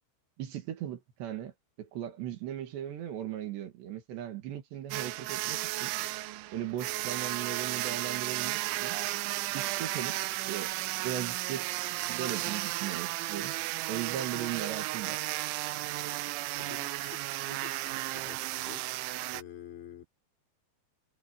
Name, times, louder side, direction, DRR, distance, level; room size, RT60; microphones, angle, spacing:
voice 1, 0.4-1.5 1.8-5.9 6.5-9.0 9.5-10.2 10.5-11.7 12.0-13.6 13.9-15.2, right 10 dB, 70° right, 4.2 m, -38 dB
sound 1, 4.9-19.4, right 18 dB, 90° right, 3.2 m, -34 dB
voice 2, 16.6-18.9 19.3-20.0, left 9 dB, 75° left, 6.4 m, -49 dB
omnidirectional pair, 5.3 m